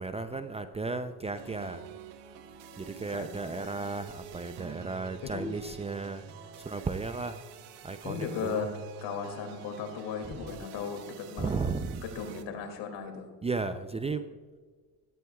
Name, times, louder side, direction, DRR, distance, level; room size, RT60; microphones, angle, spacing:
voice 1, 0.0-1.8 2.8-6.2 6.6-7.4 7.8-8.7 10.3-10.4 11.4-12.0 13.4-14.3, right 4 dB, 15° right, 10 dB, 0.5 m, -34 dB
sound 1, 1.3-12.4, right 7 dB, 65° right, 1.1 m, -47 dB
voice 2, 3.1-3.7 5.2-5.6 8.0-8.7 9.0-11.5 12.0-13.3, left 6 dB, 70° left, 4 dB, 2.5 m, -36 dB
16.0 x 12.5 x 2.3 m, 1.5 s
supercardioid pair, 90°, 44 cm